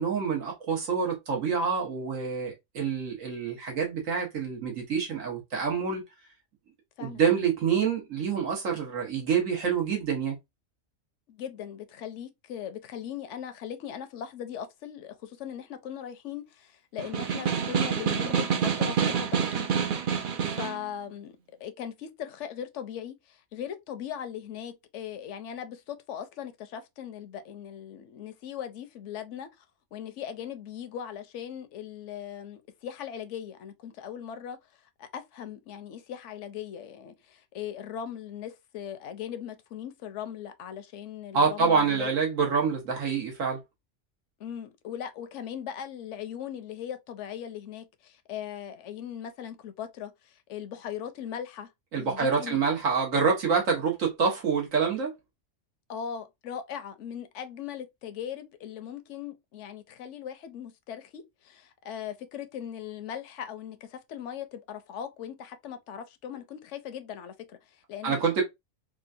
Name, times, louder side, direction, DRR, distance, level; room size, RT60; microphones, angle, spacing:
voice 1, 0.0-6.0 7.0-10.4 41.3-43.6 51.9-55.1 68.0-68.4, right 5 dB, 85° right, 1.6 m, -27 dB
voice 2, 11.3-29.7 29.9-34.6 35.0-42.1 44.4-51.7 51.9-52.6 55.9-68.2, left 9 dB, 70° left, 0.9 m, -39 dB
Snare drum, 17.0-20.8, right 7 dB, 55° right, 0.6 m, -27 dB
3.7 x 2.3 x 2.5 m
omnidirectional pair, 1.3 m